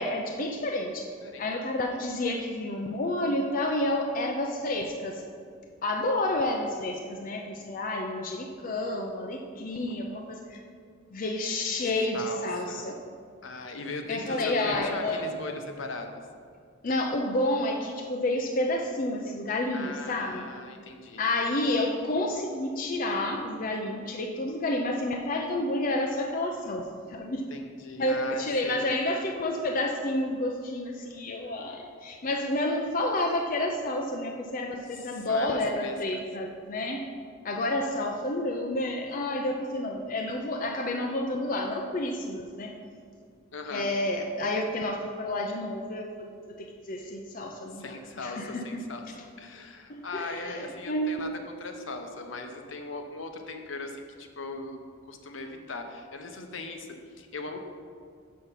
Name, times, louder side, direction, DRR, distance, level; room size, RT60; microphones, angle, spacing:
voice 1, 0.0-1.1 1.4-5.2 5.8-10.6 11.1-12.9 14.1-15.3 16.8-20.5 21.2-27.4 28.0-37.0 37.4-42.7 43.7-48.8 49.9-51.2, left 1 dB, 45° left, 2 dB, 0.5 m, -30 dB
voice 2, 12.1-12.9 13.4-16.2 19.7-21.2 27.5-28.9 35.0-36.2 37.8-38.0 43.5-43.9 47.7-49.0 49.4-54.8 55.0-56.9 57.2-57.6, left 3 dB, 70° left, 5 dB, 0.8 m, -39 dB
6.6 x 6.5 x 5.7 m, 2.2 s
head